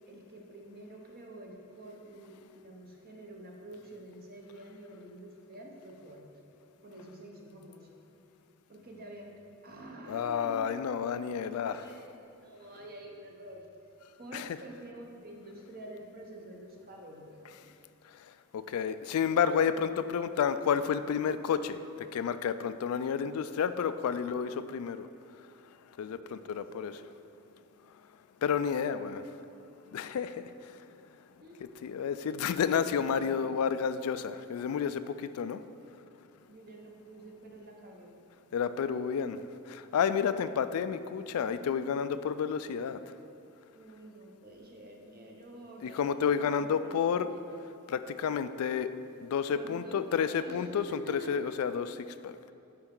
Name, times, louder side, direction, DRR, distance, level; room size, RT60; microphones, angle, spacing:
voice 1, 0.1-6.3 6.8-7.9 8.7-13.7 14.2-17.7 26.2-26.9 31.4-31.8 33.1-33.4 36.5-38.2 43.7-46.1 46.4-46.9 47.2-47.3 49.6-51.3, right 1 dB, 45° right, 0 dB, 0.9 m, -48 dB
voice 2, 10.1-11.9 14.3-14.6 18.1-25.1 26.0-27.0 28.4-29.3 29.9-30.9 31.8-35.6 38.5-43.1 45.8-47.3 47.9-48.9 49.2-52.5, left 7 dB, 75° left, 12 dB, 0.3 m, -31 dB
10.5 x 4.5 x 3.8 m, 2.7 s
head